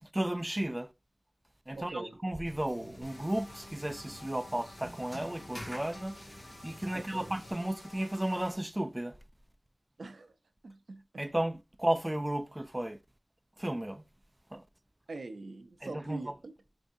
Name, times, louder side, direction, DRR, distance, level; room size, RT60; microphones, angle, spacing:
voice 1, 0.1-0.9 1.7-9.2 11.2-13.0 13.6-14.0 14.5-14.6 15.8-16.3, right 1 dB, 20° right, 0.3 m, -34 dB
voice 2, 1.7-2.2 6.9-7.3 10.0-10.3 10.6-11.2 15.1-16.5, right 3 dB, 90° right, 0.5 m, -43 dB
sound 1, 2.4-7.5, left 1 dB, 30° left, 2.1 m, -49 dB
sound 2, 3.0-8.5, left 1 dB, 60° left, 1.4 m, -52 dB
4.5 x 2.6 x 2.6 m
wide cardioid pair, 55°, 0 cm